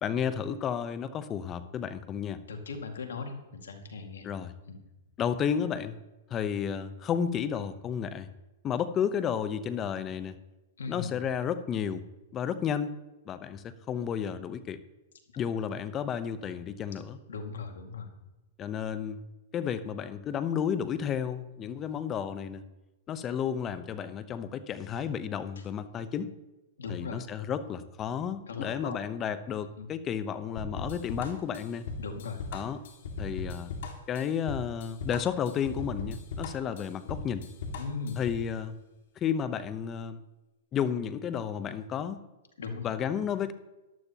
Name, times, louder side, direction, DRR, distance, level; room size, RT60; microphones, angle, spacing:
voice 1, 0.0-2.4 4.2-4.5 5.2-6.0 6.3-8.3 8.6-10.4 10.9-12.0 12.3-13.0 13.3-14.8 15.4-17.2 18.6-19.2 19.5-22.6 23.1-26.3 26.9-31.9 32.5-32.8 33.2-33.7 34.1-37.5 38.2-38.8 39.2-40.2 40.7-42.2 42.8-43.5, left 8 dB, 25° left, 12 dB, 0.8 m, -32 dB
voice 2, 2.5-4.3 4.7-4.8 10.8-11.1 16.9-17.0 17.3-18.1 26.8-27.2 28.5-29.0 29.8-29.9 32.0-32.4 37.8-38.2 42.6-42.9, left 4 dB, 85° left, 4 dB, 2.0 m, -38 dB
sound 1, 30.6-38.5, left 3 dB, 65° left, 2.1 m, -38 dB
13.5 x 12.0 x 3.0 m, 1.0 s
hypercardioid pair, 125°, 0 cm